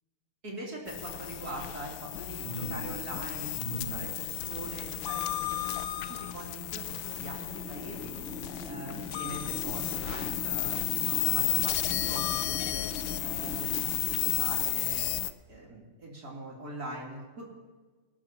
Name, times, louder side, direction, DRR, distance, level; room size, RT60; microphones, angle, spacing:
voice 1, 0.4-8.1 8.6-12.9 13.2-15.1 15.5-17.5, right 1 dB, 45° right, -3 dB, 3.8 m, -42 dB
sound 1, 0.9-15.3, left 14 dB, 75° left, 1.2 m, -33 dB
sound 2, 1.7-7.5 7.9-9.1 9.5-9.7, right 1 dB, 20° left, 6.0 m, -45 dB
sound 3, 7.1-14.6, left 2 dB, 5° right, 3.7 m, -43 dB
27.0 x 12.5 x 3.0 m, 1.3 s
omnidirectional pair, 2.4 m